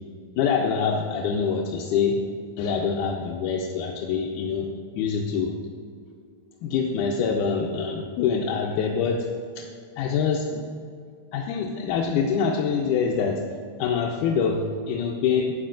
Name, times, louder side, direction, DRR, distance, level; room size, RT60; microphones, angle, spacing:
voice 1, 0.4-2.2 2.6-4.7 4.9-5.6 6.6-9.3 9.6-9.7 10.0-10.7 11.3-13.4 13.8-15.6, left 6 dB, 90° left, 0 dB, 2.2 m, -25 dB
11.5 x 8.7 x 2.5 m, 2.2 s
omnidirectional pair, 3.5 m